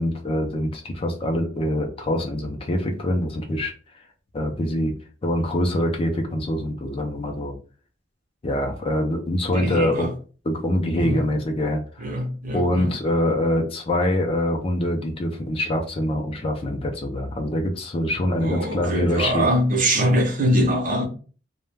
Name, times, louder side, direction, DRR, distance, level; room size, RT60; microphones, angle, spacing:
voice 1, 0.0-3.7 4.3-4.9 5.2-7.5 8.4-10.1 10.5-12.1 12.5-19.5, left 1 dB, 30° left, 0.4 m, -24 dB
voice 2, 9.5-10.1 10.9-11.3 12.0-12.9 18.1-21.1, equal, 45° right, 0.6 m, -23 dB
2.2 x 2.1 x 3.2 m
head